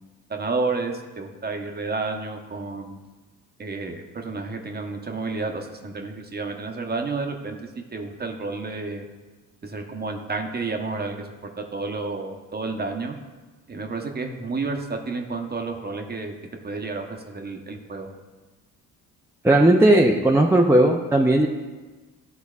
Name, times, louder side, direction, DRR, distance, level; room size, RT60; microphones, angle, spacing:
voice 1, 0.3-3.0 3.6-7.6 7.9-9.0 9.6-11.3 11.6-13.2 13.7-16.3 16.6-18.1, right 3 dB, 25° right, 3 dB, 0.9 m, -30 dB
voice 2, 19.4-21.5, right 1 dB, 5° right, 0 dB, 0.5 m, -16 dB
12.0 x 4.0 x 2.4 m, 1.3 s
supercardioid pair, 75°, 35 cm